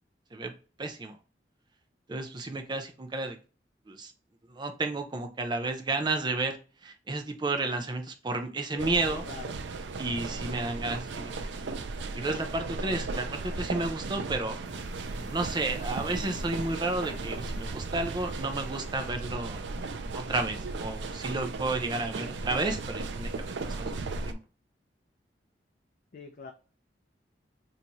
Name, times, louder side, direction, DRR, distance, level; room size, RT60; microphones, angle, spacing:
voice 1, 0.8-1.2 2.1-3.4 3.9-4.1 4.5-9.2 10.0-11.3 12.1-14.6 15.3-19.6 20.1-24.4, right 2 dB, 25° right, 6 dB, 0.5 m, -32 dB
voice 2, 8.7-9.6 26.1-26.5, left 3 dB, 50° left, 4 dB, 0.4 m, -44 dB
sound 1, 8.8-24.3, right 3 dB, 85° right, 0.4 m, -36 dB
sound 2, 14.6-19.6, right 1 dB, 50° right, 1.0 m, -47 dB
3.5 x 2.7 x 2.9 m, 0.36 s
head